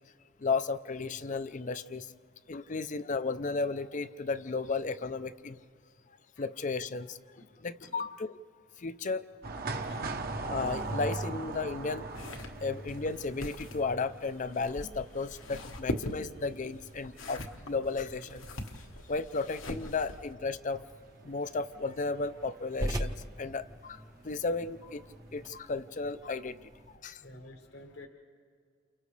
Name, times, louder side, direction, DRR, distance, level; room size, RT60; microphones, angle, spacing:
voice 1, 0.4-2.1 2.5-5.6 6.1-7.2 7.6-8.4 8.8-9.2 10.5-12.1 12.6-18.4 19.1-20.9 21.2-25.0 25.3-26.6 27.0-27.2, left 4 dB, 35° left, 14 dB, 0.5 m, -34 dB
voice 2, 7.4-7.9 9.7-10.2 15.2-15.3 18.8-18.9 24.8-24.9 27.0-28.1, left 2 dB, 55° left, 2 dB, 1.2 m, -52 dB
sound 1, 9.4-23.5 23.7-23.8 24.9-25.2 25.5-25.6, right 3 dB, 45° right, 0.9 m, -41 dB
sound 2, 12.1-20.3, left 1 dB, 80° left, 1.4 m, -42 dB
sound 3, 20.7-27.0, right 1 dB, 15° right, 0.7 m, -42 dB
29.5 x 29.0 x 3.3 m, 2.2 s
head